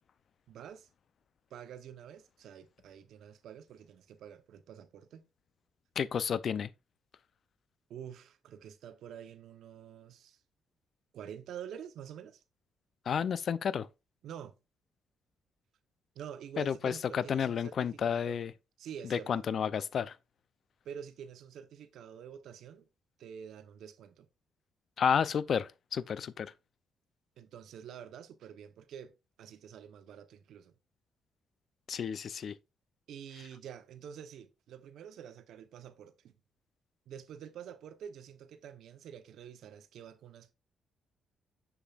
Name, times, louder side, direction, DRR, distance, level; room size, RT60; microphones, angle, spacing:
voice 1, 0.5-0.9 1.5-5.2 7.9-10.4 11.1-12.4 14.2-14.6 16.1-18.5 18.8-19.3 20.8-22.9 23.2-24.3 27.4-30.7 33.1-36.3 37.1-40.5, right 8 dB, 75° right, 0.8 m, -47 dB
voice 2, 6.0-6.7 13.1-13.9 16.6-18.5 19.1-20.2 25.0-26.5 31.9-32.6, left 7 dB, 50° left, 0.4 m, -31 dB
7.1 x 6.8 x 2.4 m
cardioid pair, 110°, 0 cm